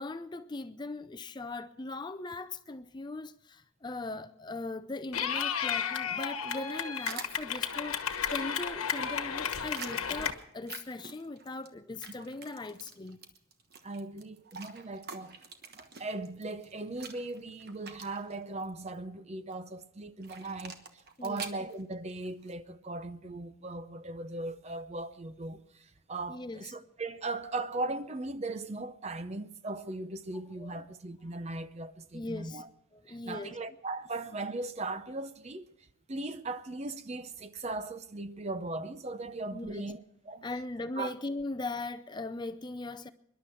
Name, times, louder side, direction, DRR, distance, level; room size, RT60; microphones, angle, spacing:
voice 1, 0.0-13.2 21.2-21.5 26.3-26.6 30.6-30.8 32.1-32.6 32.9-33.6 39.5-39.9 40.4-43.1, left 2 dB, 20° left, 0.4 m, -39 dB
Clapping / Cheering, 5.1-10.3, left 7 dB, 85° left, 1.2 m, -33 dB
sound 1, 6.5-7.7 8.0-11.7 12.0-18.8 20.2-22.5, right 5 dB, 45° right, 1.2 m, -47 dB
voice 2, 13.8-15.4 15.8-32.7 33.1-35.7 36.1-40.5 41.0-41.1, right 2 dB, 30° right, 0.6 m, -38 dB
24.5 x 11.5 x 4.4 m
head